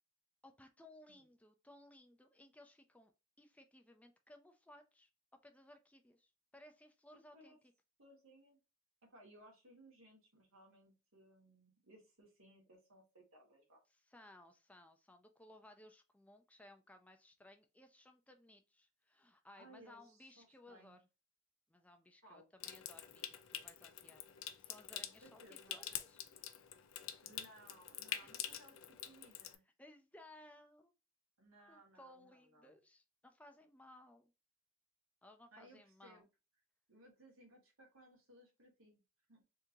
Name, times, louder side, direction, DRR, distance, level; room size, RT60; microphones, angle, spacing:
voice 1, 0.4-5.1 5.4-7.6 14.1-21.1 21.7-24.2 24.6-26.2 28.2-28.3 29.8-30.9 31.7-34.3 35.2-36.2, left 1 dB, 5° left, 0.4 m, -61 dB
voice 2, 8.0-8.6 9.0-13.8 19.6-21.0 22.2-22.5 25.2-25.7 27.2-29.6 31.4-32.8 35.5-36.2 36.9-39.0 39.3-39.4, right 1 dB, 85° right, 1.7 m, -62 dB
Water tap faucet / Sink (filling or washing) / Trickle dribble, 22.6-29.6, left 11 dB, 85° left, 0.5 m, -47 dB
3.6 x 2.8 x 2.6 m
head